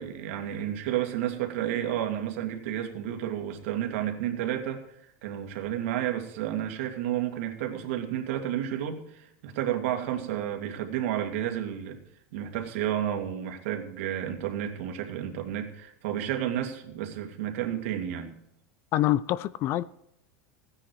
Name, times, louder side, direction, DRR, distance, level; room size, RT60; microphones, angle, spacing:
voice 1, 0.0-4.8 5.2-12.0 12.3-18.4, right 11 dB, 65° right, 2.4 m, -31 dB
voice 2, 18.9-19.8, left 14 dB, 35° left, 0.4 m, -25 dB
15.5 x 10.0 x 4.7 m
supercardioid pair, 165°, 7 cm